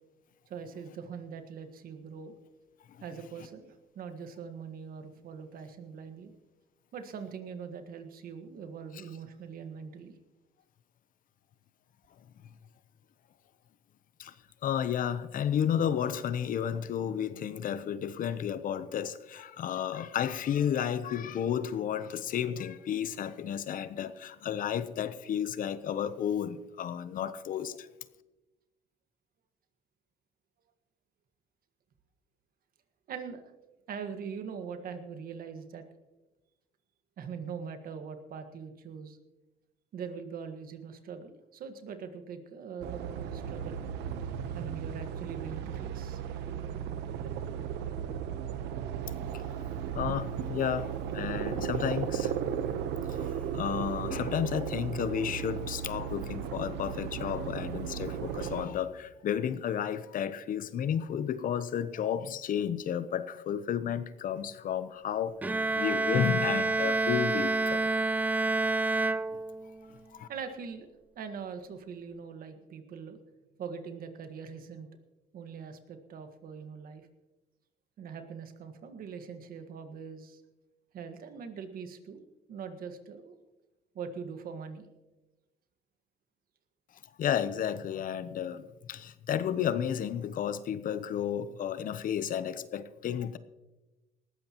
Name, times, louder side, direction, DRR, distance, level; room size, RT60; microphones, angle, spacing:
voice 1, 0.5-2.3 3.0-6.3 6.9-10.1 33.1-33.5 33.9-35.8 37.2-39.2 39.9-43.8 44.5-46.2 49.8-49.9 70.3-70.9 71.1-73.2 73.6-74.9 75.3-77.1 78.0-80.4 80.9-82.2 82.5-83.4 83.9-84.9, right 6 dB, 60° right, 7 dB, 1.6 m, -42 dB
voice 2, 14.6-27.9 49.3-49.5 49.9-52.8 53.1-68.1 70.1-70.3 87.2-93.4, left 9 dB, 55° left, 14 dB, 0.8 m, -32 dB
sound 1, 42.8-58.7, right 8 dB, 85° right, 1.0 m, -35 dB
Bowed string instrument, 65.4-69.9, right 2 dB, 10° right, 0.3 m, -28 dB
19.0 x 14.5 x 3.0 m, 1.1 s
cardioid pair, 110°, 17 cm